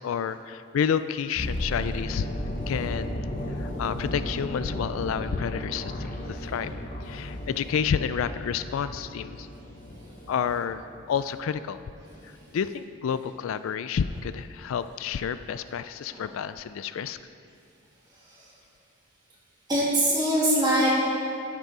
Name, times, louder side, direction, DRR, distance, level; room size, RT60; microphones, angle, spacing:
voice 1, 0.0-2.3 2.7-6.7 7.0-9.5 10.3-10.8 11.1-11.8 12.2-17.2, left 7 dB, 85° left, 13 dB, 0.3 m, -30 dB
sound 1, 1.4-11.4 11.6-11.8, left 1 dB, 40° left, 0.8 m, -35 dB
voice 2, 9.9-10.2 12.0-12.5 16.1-16.3 18.1-18.5 19.7-20.9, right 1 dB, 20° right, -7 dB, 2.2 m, -25 dB
10.5 x 6.7 x 4.8 m, 2.5 s
head